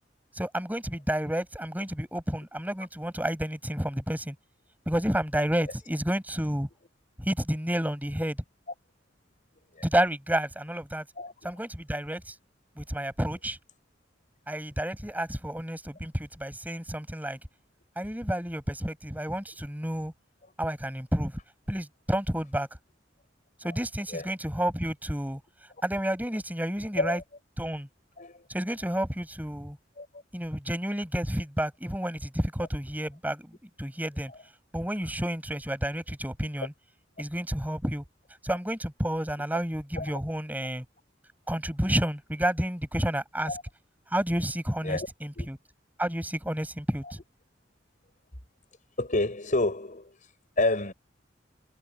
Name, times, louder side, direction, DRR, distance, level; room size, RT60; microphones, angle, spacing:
voice 1, 0.3-4.4 4.9-6.7 7.2-8.4 9.8-11.0 11.4-12.3 12.8-13.6 14.5-17.4 18.0-20.1 20.6-21.3 21.7-22.7 23.6-25.4 25.8-27.2 27.6-27.9 28.5-29.8 30.3-34.3 34.7-36.7 37.2-38.0 38.4-40.8 41.5-43.6 44.1-45.6 46.0-47.2, right 1 dB, 10° right, 7.5 m, -30 dB
voice 2, 11.2-11.5 24.1-24.3 27.0-27.2 28.2-28.4 30.0-30.1 40.0-40.2 43.4-43.6 44.8-45.1 45.4-45.5 49.0-50.9, left 2 dB, 45° left, 6.3 m, -29 dB
head